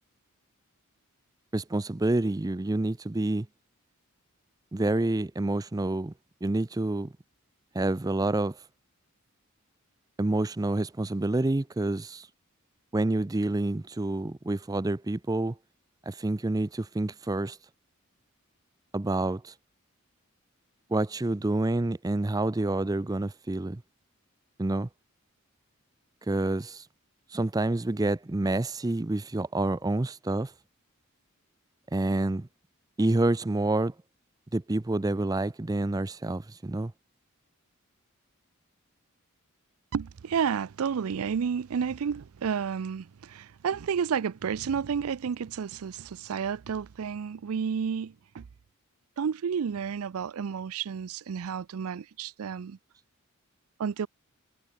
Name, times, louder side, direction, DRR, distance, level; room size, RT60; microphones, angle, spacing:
voice 1, 1.5-3.5 4.7-6.1 6.4-7.1 7.7-8.6 10.2-12.3 12.9-15.6 16.1-17.6 18.9-19.5 20.9-23.8 24.6-24.9 26.3-26.8 27.3-30.5 31.9-32.5 33.0-33.9 34.5-36.9, right 2 dB, 15° right, 0.5 m, -28 dB
voice 2, 39.9-48.5 49.2-52.8 53.8-54.1, right 7 dB, 80° right, 0.4 m, -31 dB
head